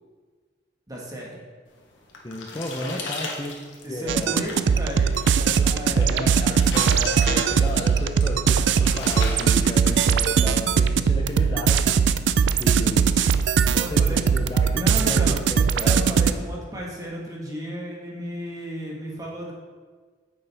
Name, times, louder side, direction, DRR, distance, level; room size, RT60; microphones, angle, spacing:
voice 1, 0.9-1.4 2.5-3.0 3.8-6.3 8.5-8.7 13.7-14.2 14.7-15.4 15.7-19.5, equal, 20° right, -3 dB, 1.5 m, -34 dB
sound 1, 1.7-10.6, left 3 dB, 85° left, 1.3 m, -37 dB
voice 2, 2.2-3.6 3.9-4.5 5.9-12.0 12.6-13.2 13.9-16.0, left 1 dB, 20° left, 0 dB, 0.6 m, -33 dB
sound 2, 4.1-16.3, right 6 dB, 70° right, 0.3 m, -20 dB
9.1 x 7.0 x 3.4 m, 1.5 s
head